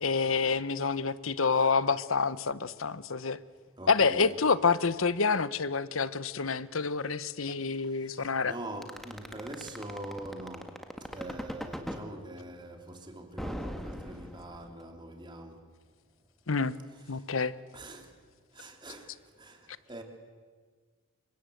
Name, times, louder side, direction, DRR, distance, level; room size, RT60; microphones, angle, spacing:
voice 1, 0.0-3.4 3.9-8.5 16.5-16.7 17.1-17.6, left 5 dB, 75° left, 1.0 m, -28 dB
voice 2, 3.8-4.4 8.1-10.7 11.1-15.6 16.9-17.2 17.7-18.1 18.5-19.1 19.4-19.6 19.9-20.0, right 1 dB, 20° right, 3.2 m, -43 dB
sound 1, 8.8-12.0 13.4-14.8, equal, ahead, 1.8 m, -38 dB
29.5 x 25.0 x 8.0 m
head